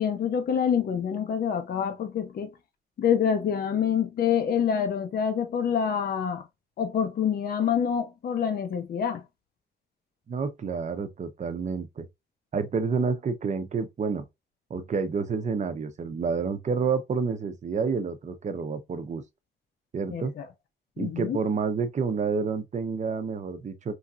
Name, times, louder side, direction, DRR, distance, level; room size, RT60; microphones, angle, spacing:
voice 1, 0.0-2.5 3.0-6.4 6.8-9.2 20.1-20.5 21.0-21.4, left 8 dB, 50° left, 0.6 m, -26 dB
voice 2, 10.3-12.0 12.5-14.2 14.7-19.2 19.9-20.3 21.0-23.9, right 5 dB, 35° right, 0.7 m, -29 dB
3.1 x 2.7 x 2.4 m
cardioid pair, 90°, 20 cm